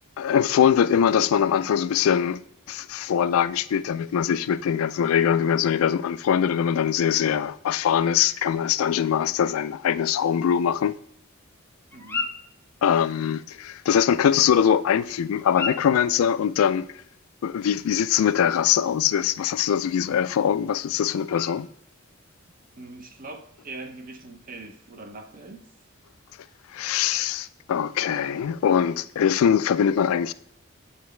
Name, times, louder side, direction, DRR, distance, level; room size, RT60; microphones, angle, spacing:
voice 1, 0.2-2.4 2.7-11.0 12.8-16.9 17.4-21.7 26.7-30.3, left 8 dB, 85° left, 0.3 m, -22 dB
sound 1, 10.1-22.8, left 4 dB, 10° left, 0.5 m, -41 dB
voice 2, 11.9-12.3 22.8-25.7, right 2 dB, 40° right, 0.7 m, -41 dB
8.8 x 4.0 x 3.2 m
head